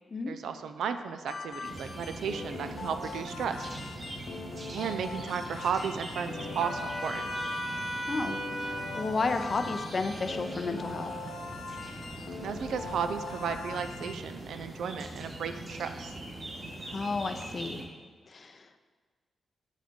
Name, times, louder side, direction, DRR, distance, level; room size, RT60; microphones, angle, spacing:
voice 1, 0.3-3.7 4.7-7.2 12.4-16.1, right 7 dB, 90° right, 9 dB, 0.4 m, -34 dB
sound 1, 1.3-14.2, left 4 dB, 65° left, 0.9 m, -41 dB
sound 2, 1.6-17.8, right 1 dB, 40° right, 1.4 m, -42 dB
Trumpet, 6.6-9.1, equal, 20° right, 1.1 m, -36 dB
voice 2, 8.1-11.1 16.8-17.8 18.3-18.8, left 3 dB, 40° left, 8 dB, 0.5 m, -32 dB
5.7 x 5.1 x 5.1 m, 1.5 s
wide cardioid pair, 120°, 0 cm